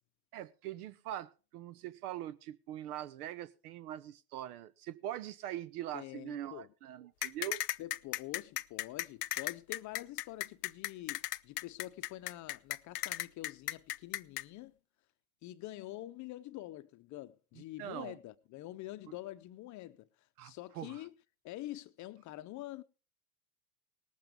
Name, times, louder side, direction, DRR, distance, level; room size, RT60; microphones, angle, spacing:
voice 1, 0.3-7.6 17.8-18.2 20.4-21.0, right 12 dB, 75° right, 0.9 m, -42 dB
voice 2, 5.9-6.7 7.8-14.7 15.4-21.1 21.4-22.8, left 15 dB, 40° left, 0.7 m, -46 dB
sound 1, 7.2-14.4, left 15 dB, 90° left, 0.7 m, -36 dB
19.0 x 7.8 x 5.2 m
hypercardioid pair, 105°, 45 cm